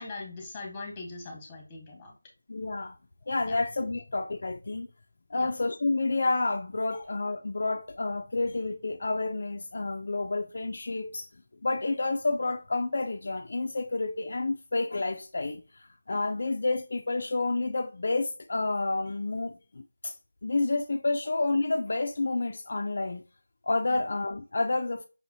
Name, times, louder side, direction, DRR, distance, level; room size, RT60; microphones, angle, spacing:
voice 1, 0.0-2.2 3.5-3.6 5.3-5.5 6.9-7.0 23.9-24.0, left 3 dB, 10° left, 1.1 m, -41 dB
voice 2, 2.5-3.0 3.3-4.9 5.3-11.3 11.6-20.2 20.4-23.2 23.7-25.1, left 3 dB, 50° left, 0.4 m, -29 dB
5.4 x 2.9 x 2.6 m
figure-of-eight pair, 170°, 0 cm